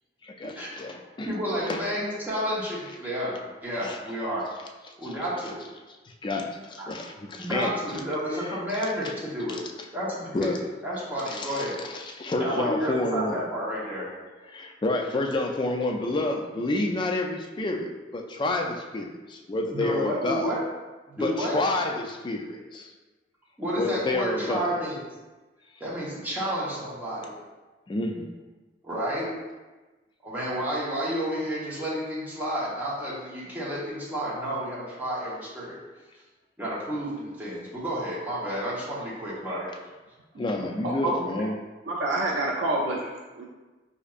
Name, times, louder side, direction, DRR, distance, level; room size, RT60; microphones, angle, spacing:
voice 1, 0.2-1.3 1.7-1.8 3.8-4.0 6.2-8.0 10.3-10.6 11.3-13.4 14.5-20.5 21.2-22.9 23.8-24.7 27.9-28.3 40.4-41.5, left 2 dB, 25° left, 2 dB, 0.3 m, -29 dB
voice 2, 1.3-3.3 3.6-4.4 5.0-5.6 6.8-6.9 7.4-9.6 9.9-10.5 10.8-11.8 12.4-14.1 19.7-20.6 21.1-21.6 23.6-25.0 25.8-27.3 28.8-29.3 30.2-35.8 36.6-39.9 41.4-41.5, equal, 10° right, -8 dB, 0.9 m, -31 dB
voice 3, 40.8-41.2 41.9-43.4, right 2 dB, 90° right, -2 dB, 0.4 m, -28 dB
4.2 x 2.5 x 2.4 m, 1.2 s
head